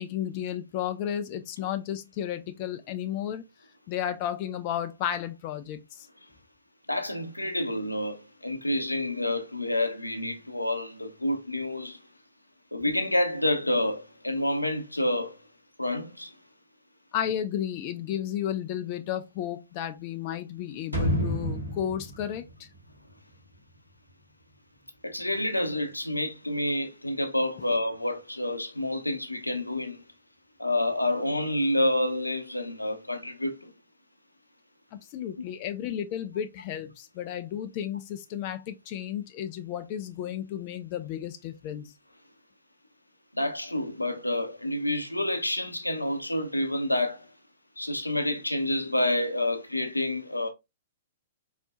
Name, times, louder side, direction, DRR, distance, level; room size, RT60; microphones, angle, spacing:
voice 1, 0.0-3.4 3.9-6.1 17.1-22.7 34.9-41.9, left 10 dB, 35° left, 0.5 m, -33 dB
voice 2, 6.9-12.0 12.7-15.4 15.8-16.3 25.0-30.0 30.6-33.7 35.4-35.5 43.3-47.3 47.8-50.5, left 1 dB, 85° left, 0.8 m, -28 dB
sound 1, 20.9-23.7 24.1-24.2, equal, 90° right, 1.7 m, -30 dB
4.3 x 4.2 x 2.3 m
figure-of-eight pair, 110°, 0 cm